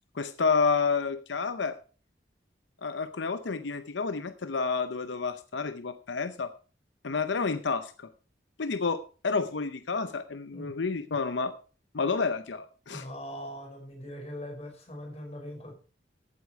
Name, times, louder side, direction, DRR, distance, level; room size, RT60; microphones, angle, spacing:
voice 1, 0.1-1.8 2.8-6.5 7.0-8.1 8.6-11.5 11.9-13.0, left 4 dB, 85° left, 11 dB, 0.7 m, -30 dB
voice 2, 12.9-15.7, equal, 35° left, 1 dB, 5.0 m, -41 dB
15.0 x 8.3 x 4.7 m, 0.37 s
head